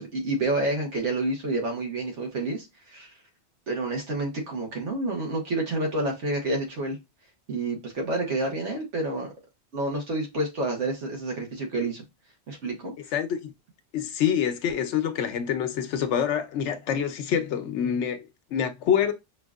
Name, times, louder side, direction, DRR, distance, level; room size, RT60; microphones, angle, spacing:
voice 1, 0.0-3.1 3.7-7.0 7.5-9.3 9.7-12.0 12.5-12.9, right 2 dB, 80° right, 1.4 m, -29 dB
voice 2, 13.1-13.5 13.9-19.1, left 8 dB, 80° left, 1.0 m, -26 dB
5.6 x 2.6 x 2.3 m
omnidirectional pair, 1.2 m